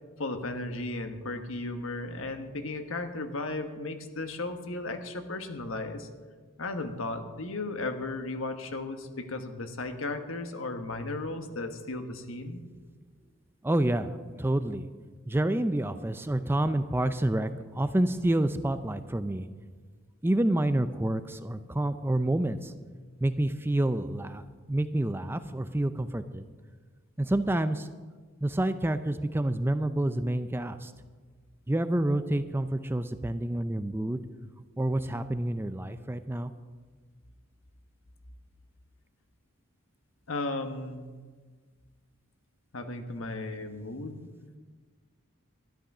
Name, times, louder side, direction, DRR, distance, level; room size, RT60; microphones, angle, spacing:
voice 1, 0.2-6.1 6.6-12.6 40.3-41.1 42.7-44.3, left 2 dB, 75° left, 7 dB, 1.3 m, -35 dB
voice 2, 13.6-14.9 15.3-19.5 20.2-22.7 23.2-26.5 27.2-27.9 28.4-30.9 31.7-34.2 34.8-36.5, right 1 dB, 10° right, 11 dB, 0.4 m, -28 dB
13.0 x 11.5 x 6.1 m, 1.4 s
head